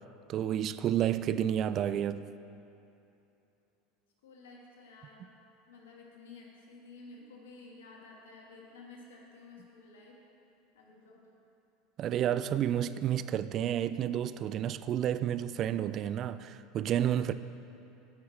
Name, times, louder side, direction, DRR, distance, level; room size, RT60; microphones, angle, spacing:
voice 1, 0.3-2.3 12.0-17.3, right 10 dB, 45° right, 0.3 m, -30 dB
voice 2, 4.2-5.3 5.7-10.2 10.7-11.3, left 3 dB, 80° left, 1.5 m, -52 dB
14.5 x 5.7 x 3.2 m
hypercardioid pair, 85°, 0 cm